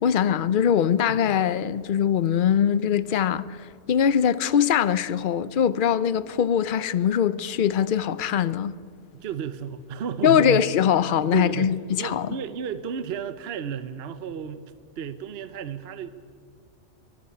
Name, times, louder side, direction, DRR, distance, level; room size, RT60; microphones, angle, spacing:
voice 1, 0.0-8.7 10.2-12.3, left 8 dB, 50° left, 0.7 m, -22 dB
voice 2, 9.1-10.6 11.3-14.6 15.0-16.1, right 8 dB, 60° right, 1.0 m, -32 dB
23.0 x 13.5 x 9.8 m
omnidirectional pair, 1.3 m